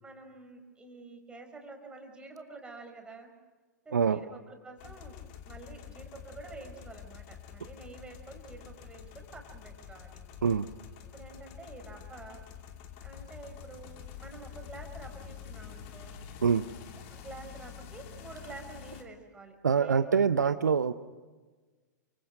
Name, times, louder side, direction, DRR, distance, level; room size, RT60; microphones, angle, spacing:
voice 1, 0.0-3.3 3.8-5.2 5.4-10.2 11.0-12.4 13.0-16.2 17.0-20.5, right 3 dB, 10° right, 4 dB, 4.8 m, -48 dB
sound 1, 4.8-19.0, left 8 dB, 40° left, 3.0 m, -47 dB
voice 2, 19.6-20.9, right 6 dB, 70° right, 12 dB, 0.9 m, -25 dB
28.5 x 25.0 x 6.6 m, 1.3 s
figure-of-eight pair, 105°, 10 cm